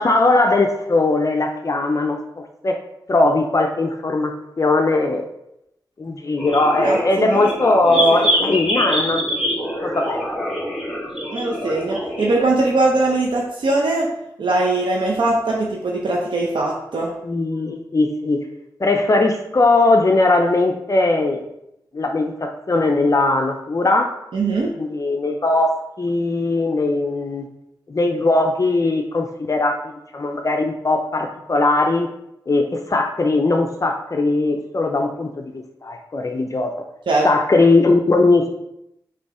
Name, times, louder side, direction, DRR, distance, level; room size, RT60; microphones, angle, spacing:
voice 1, 0.0-2.2 2.6-2.8 3.1-4.3 4.6-5.3 6.0-9.3 9.8-10.2 17.2-18.5 18.8-21.4 21.9-24.1 24.7-27.4 27.9-32.1 32.5-35.4 35.8-36.7 37.2-38.5, left 2 dB, 40° left, 3 dB, 0.6 m, -19 dB
sound 1, 6.4-12.4, equal, 5° right, 1.7 m, -25 dB
voice 2, 6.8-7.5 7.9-8.5 11.3-14.1 14.4-17.1 24.3-24.7 37.1-37.3, right 2 dB, 80° right, -2 dB, 0.8 m, -21 dB
6.9 x 3.1 x 4.8 m, 0.82 s
wide cardioid pair, 90°, 8 cm